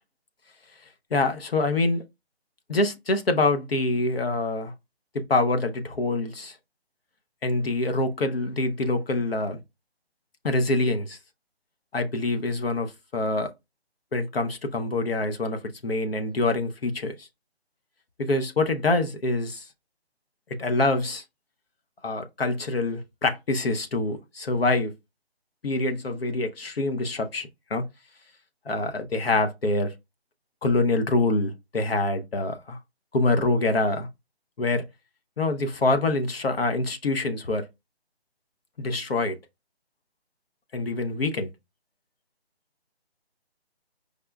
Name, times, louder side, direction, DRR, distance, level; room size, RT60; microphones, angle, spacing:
voice 1, 1.1-2.0 2.7-4.7 5.1-6.6 7.4-9.6 10.4-11.2 11.9-13.5 14.1-17.3 18.2-19.7 20.6-21.2 22.0-24.9 25.6-27.9 28.7-29.9 30.6-32.8 33.1-34.1 34.6-34.9 35.4-37.7 38.8-39.4 40.7-41.5, left 2 dB, 65° left, 0.8 m, -25 dB
4.9 x 2.2 x 2.2 m
hypercardioid pair, 170°, 32 cm